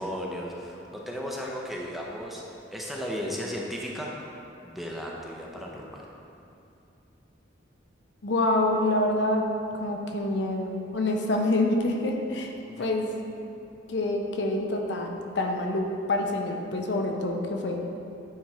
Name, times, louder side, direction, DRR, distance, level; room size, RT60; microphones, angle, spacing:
voice 1, 0.0-4.1 4.6-6.1 12.7-12.9, equal, ahead, -3 dB, 0.6 m, -35 dB
voice 2, 8.2-9.4 9.7-12.5 12.8-13.1 13.9-17.8, left 1 dB, 65° left, 2 dB, 0.6 m, -26 dB
8.8 x 3.6 x 4.3 m, 2.6 s
head